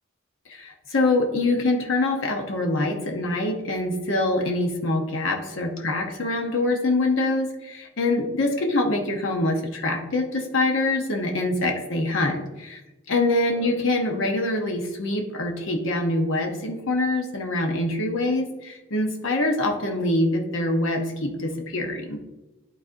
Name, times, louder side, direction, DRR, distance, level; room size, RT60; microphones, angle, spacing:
voice 1, 0.5-12.8 13.1-22.2, left 2 dB, 60° left, 2 dB, 0.8 m, -24 dB
11.5 x 4.2 x 2.6 m, 1.0 s
head